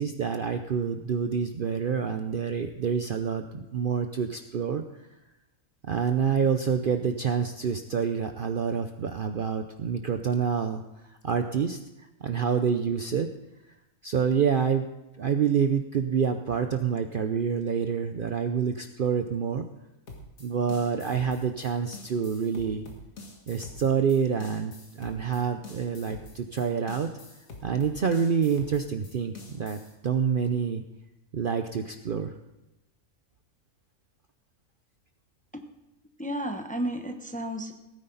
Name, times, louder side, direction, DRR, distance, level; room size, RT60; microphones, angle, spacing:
voice 1, 0.0-4.8 5.9-10.8 11.2-11.8 12.2-13.3 14.0-14.8 15.2-19.7 20.4-22.8 23.5-27.1 27.6-30.8 31.3-32.3, right 6 dB, 55° right, 7 dB, 0.7 m, -27 dB
sound 1, 20.1-29.9, left 2 dB, 90° left, 2.3 m, -46 dB
voice 2, 36.2-37.7, right 1 dB, 5° left, 5 dB, 0.8 m, -32 dB
17.0 x 9.7 x 4.0 m, 0.97 s
omnidirectional pair, 1.4 m